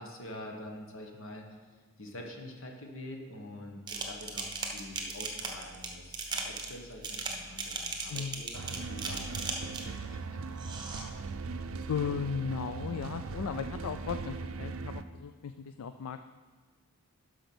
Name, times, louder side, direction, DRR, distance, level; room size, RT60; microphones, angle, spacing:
voice 1, 0.0-1.5 2.0-10.6, left 1 dB, 60° left, 2 dB, 1.5 m, -46 dB
sound 1, 3.9-10.0 10.6-11.0, right 4 dB, 20° right, 1.0 m, -37 dB
voice 2, 8.1-8.4 11.9-16.2, left 6 dB, 80° left, 9 dB, 0.4 m, -36 dB
sound 2, 8.5-15.0, right 4 dB, 65° right, 0.5 m, -39 dB
12.0 x 5.0 x 6.1 m, 1.4 s
head